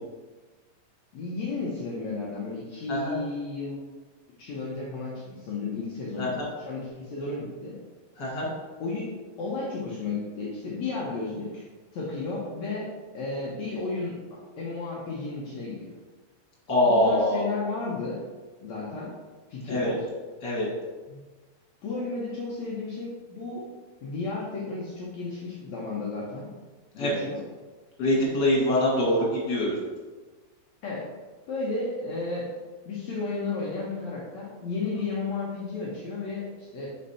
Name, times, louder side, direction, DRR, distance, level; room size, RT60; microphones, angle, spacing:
voice 1, 1.1-3.7 4.4-7.8 8.8-9.1 9.4-11.6 11.9-15.9 16.8-18.2 18.6-19.2 19.5-20.1 21.1-21.2 21.8-23.7 24.0-26.5 26.9-27.4 30.8-31.1 31.5-32.5 32.8-36.9, left 3 dB, 80° left, -5 dB, 1.6 m, -33 dB
voice 2, 8.2-8.5 16.7-17.5 19.7-19.9 20.4-20.7 27.0-27.2 28.0-29.8, left 1 dB, 35° left, -5 dB, 2.0 m, -24 dB
5.2 x 5.0 x 5.6 m, 1.3 s
omnidirectional pair, 4.7 m